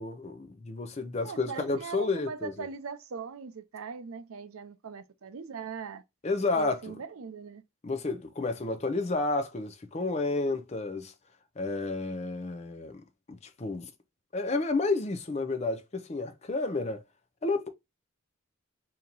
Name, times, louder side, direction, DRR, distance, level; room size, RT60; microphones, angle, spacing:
voice 1, 0.0-2.5 6.2-7.0 7.8-11.1 11.6-13.0 13.3-13.9 14.3-17.0 17.4-17.7, left 3 dB, 30° left, 0.5 m, -31 dB
voice 2, 1.2-6.0 6.6-7.6, right 5 dB, 90° right, 0.5 m, -40 dB
2.9 x 2.8 x 3.7 m
head